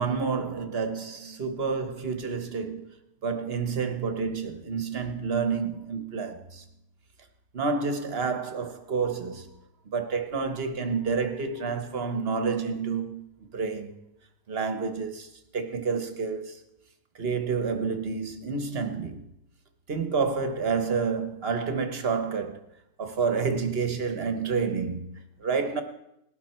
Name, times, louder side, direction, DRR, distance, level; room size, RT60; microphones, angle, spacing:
voice 1, 0.0-2.9 3.2-6.6 7.5-9.5 9.9-14.0 14.5-16.6 17.2-19.3 19.9-22.6 23.0-25.8, right 5 dB, 40° right, 1.3 m, -29 dB
19.0 x 12.0 x 4.5 m
omnidirectional pair, 1.9 m